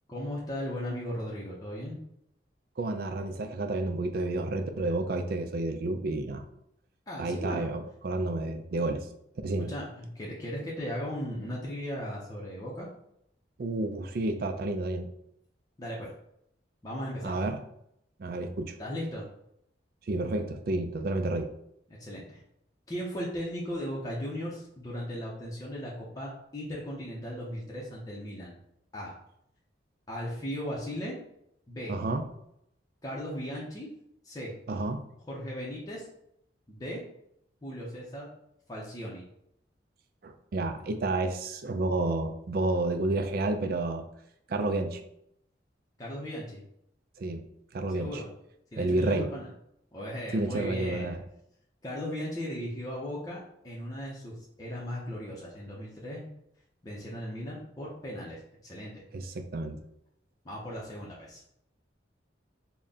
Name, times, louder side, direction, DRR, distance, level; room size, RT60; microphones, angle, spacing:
voice 1, 0.1-2.0 7.1-7.7 9.7-12.9 15.8-16.1 16.8-17.4 18.8-19.3 21.9-22.4 22.9-28.5 28.9-29.2 30.1-31.2 31.7-32.0 33.0-33.9 34.2-34.5 35.3-36.1 36.7-37.0 37.6-38.3 38.7-39.2 46.0-46.6 47.9-48.3 48.7-49.5 49.9-51.2 51.8-56.3 56.8-58.9 60.4-61.4, equal, 20° left, -5 dB, 0.6 m, -37 dB
voice 2, 2.8-6.4 7.2-9.0 9.4-9.7 13.6-15.1 17.2-17.6 18.2-18.8 20.1-21.5 31.9-32.2 34.7-35.0 40.2-44.0 44.5-45.0 47.2-47.4 47.7-48.2 48.8-49.3 50.3-51.2 59.1-59.8, right 2 dB, 55° right, 7 dB, 0.4 m, -30 dB
4.0 x 2.1 x 3.5 m, 0.76 s
head